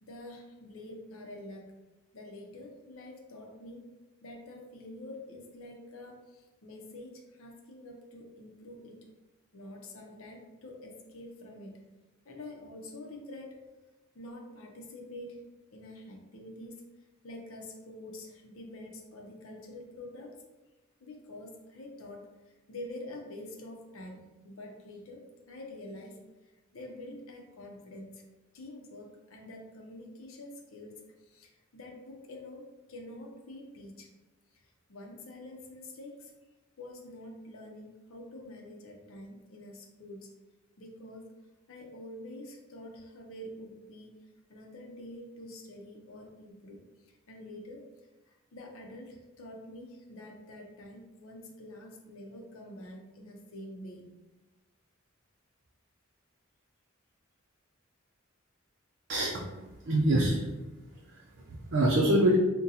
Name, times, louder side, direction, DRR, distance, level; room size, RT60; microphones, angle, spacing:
voice 1, 0.0-1.7 2.1-3.9 4.2-9.1 9.5-11.9 12.2-13.6 14.1-15.4 15.7-16.8 17.2-20.3 21.0-26.2 26.7-28.2 28.5-34.1 34.5-36.3 36.8-40.3 40.8-41.3 41.7-44.2 44.5-47.9 48.3-54.1, left 1 dB, 75° left, 0 dB, 0.6 m, -46 dB
voice 2, 59.1-59.5 59.8-60.7 61.1-62.4, right 1 dB, 60° right, -3 dB, 0.5 m, -26 dB
3.9 x 2.2 x 2.7 m, 1.1 s
head